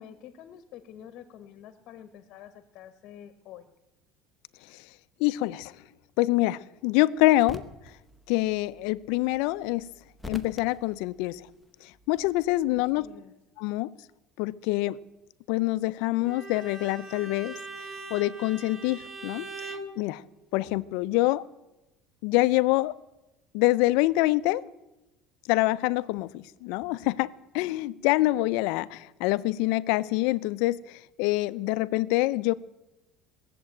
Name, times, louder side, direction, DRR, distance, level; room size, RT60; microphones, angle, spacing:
voice 1, 0.0-3.7 12.7-13.3, left 9 dB, 45° left, 11 dB, 1.0 m, -48 dB
voice 2, 5.2-5.7 6.2-7.6 8.3-9.9 10.3-11.4 12.1-13.1 13.6-13.9 14.4-15.0 15.5-17.5 18.1-20.2 20.5-21.4 22.2-22.9 23.5-24.6 25.5-27.3 27.5-30.8 31.2-32.5, left 18 dB, 65° left, 15 dB, 0.5 m, -25 dB
sound 1, 7.2-13.1, left 2 dB, ahead, 0.7 m, -47 dB
Bowed string instrument, 16.2-19.9, right 2 dB, 20° right, 1.2 m, -41 dB
18.5 x 7.6 x 8.9 m, 1.0 s
cardioid pair, 175°, 0 cm